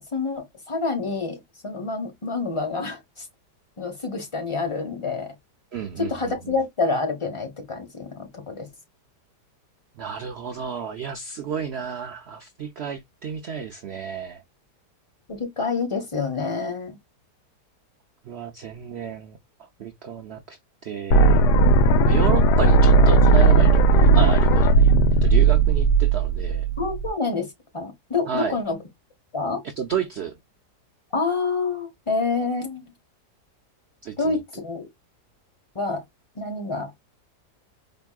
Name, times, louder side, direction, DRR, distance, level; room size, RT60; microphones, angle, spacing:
voice 1, 0.1-3.2 3.8-5.3 6.0-8.7 15.3-17.0 26.8-28.8 29.3-29.6 31.1-32.8 34.2-34.9 35.7-36.0 36.3-36.9, left 4 dB, 20° left, 1.0 m, -27 dB
voice 2, 5.7-6.6 10.0-14.4 18.2-19.4 19.8-21.5 22.1-24.9 25.2-26.7 28.3-28.6 29.6-30.3 34.0-34.4, right 7 dB, 70° right, 0.6 m, -32 dB
sound 1, 21.1-27.1, right 3 dB, 80° left, 1.2 m, -16 dB
4.5 x 3.0 x 2.3 m
omnidirectional pair, 1.8 m